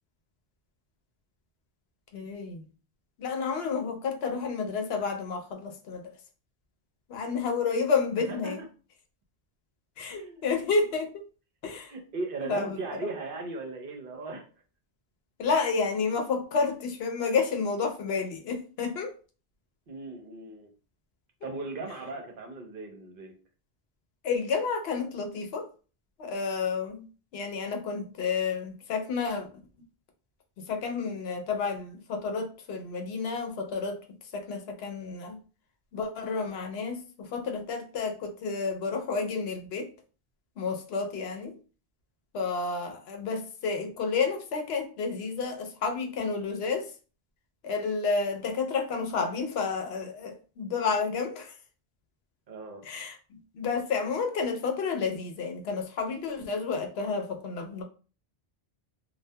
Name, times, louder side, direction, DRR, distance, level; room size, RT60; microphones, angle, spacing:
voice 1, 2.1-2.6 3.2-6.1 7.1-8.6 10.0-11.1 11.6-11.9 12.4-12.8 15.4-19.1 24.2-25.7 26.2-27.1 27.3-29.5 30.6-34.0 34.3-35.4 35.9-39.9 40.6-41.6 42.3-46.9 47.6-51.5 52.8-53.2 53.5-57.8, left 4 dB, 80° left, 0.8 m, -30 dB
voice 2, 10.1-10.5 11.9-14.5 19.9-20.7 21.4-23.3 52.5-52.8, right 3 dB, 65° right, 0.7 m, -37 dB
2.2 x 2.2 x 2.6 m
omnidirectional pair, 1.1 m